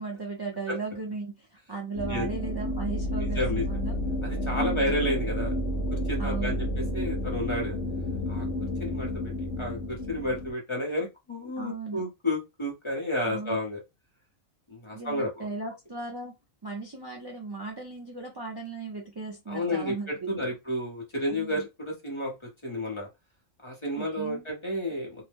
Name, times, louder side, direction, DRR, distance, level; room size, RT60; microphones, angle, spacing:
voice 1, 0.0-4.0 4.5-4.9 6.2-6.7 11.6-12.0 13.2-13.6 14.9-16.3 16.6-20.5 21.3-21.6 24.0-24.4 25.2-25.3, right 4 dB, 40° right, -2 dB, 0.3 m, -36 dB
sound 1, 2.0-10.5, equal, 65° left, 1.0 m, -30 dB
voice 2, 3.2-3.6 4.2-5.5 5.9-6.6 6.9-7.8 8.3-8.5 8.8-9.3 9.6-13.8 14.7-15.3 19.5-22.3 22.6-23.1 23.6-25.3, left 1 dB, 25° left, -1 dB, 0.7 m, -31 dB
2.7 x 2.0 x 3.3 m, 0.23 s
omnidirectional pair, 1.4 m